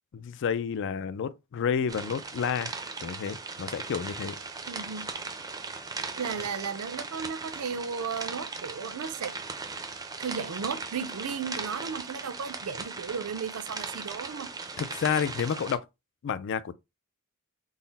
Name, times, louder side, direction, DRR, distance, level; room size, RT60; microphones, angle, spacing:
voice 1, 0.1-4.4 14.8-15.8 16.2-16.7, left 7 dB, 55° left, 0.3 m, -30 dB
sound 1, 1.9-15.8, right 4 dB, 15° right, 0.4 m, -38 dB
voice 2, 4.7-5.1 6.2-9.4 10.2-14.5, right 6 dB, 70° right, 0.5 m, -35 dB
3.9 x 2.0 x 3.9 m
head